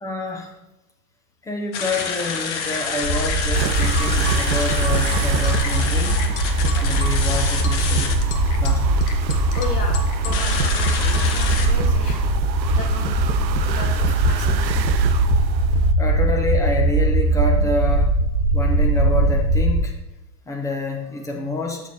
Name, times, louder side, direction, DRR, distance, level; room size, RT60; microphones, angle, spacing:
voice 1, 0.0-0.5 1.4-6.2 6.7-8.3 8.6-9.0 16.0-18.1 18.5-19.9 20.5-21.8, left 2 dB, 5° left, 0 dB, 0.8 m, -27 dB
sound 1, 1.7-11.7, left 5 dB, 45° left, 1.1 m, -28 dB
sound 2, 3.0-19.8, right 2 dB, 30° right, 1.3 m, -20 dB
sound 3, 3.5-15.9, right 9 dB, 85° right, 0.6 m, -30 dB
voice 2, 9.6-12.3 12.8-14.8, left 4 dB, 65° left, 2 dB, 1.8 m, -35 dB
7.0 x 6.3 x 2.9 m, 0.94 s
figure-of-eight pair, 105°, 50 cm